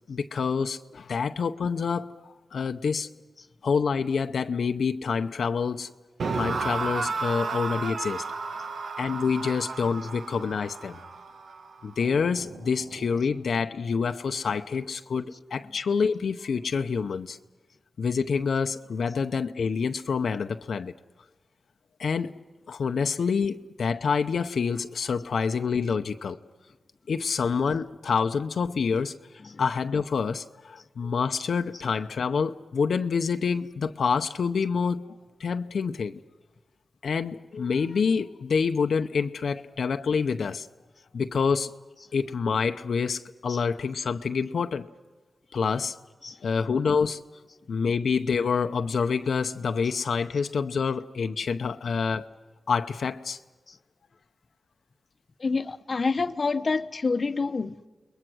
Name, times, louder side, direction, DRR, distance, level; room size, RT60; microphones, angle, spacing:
voice 1, 0.1-3.1 3.6-5.9 6.3-8.2 9.0-11.0 11.8-17.4 18.0-20.9 22.0-22.4 22.7-26.4 27.1-29.2 29.6-36.2 37.0-40.7 41.1-41.7 42.1-44.9 45.5-46.0 46.4-47.2 47.7-52.3 52.7-53.4, left 5 dB, 80° left, 0.7 m, -27 dB
sound 1, 6.2-13.3, right 4 dB, 80° right, 1.3 m, -33 dB
voice 2, 55.4-57.8, left 4 dB, 45° left, 0.8 m, -29 dB
29.5 x 21.5 x 6.3 m
wide cardioid pair, 100°, 0 cm